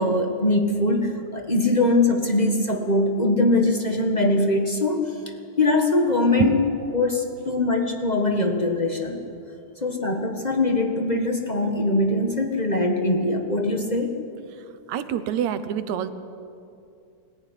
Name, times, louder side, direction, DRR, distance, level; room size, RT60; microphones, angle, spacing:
voice 1, 0.0-6.6 6.9-9.2 9.8-14.1, left 2 dB, 25° left, 3 dB, 1.0 m, -22 dB
voice 2, 14.9-16.1, right 10 dB, 75° right, 11 dB, 2.2 m, -25 dB
22.0 x 15.0 x 10.0 m, 2.5 s
omnidirectional pair, 3.3 m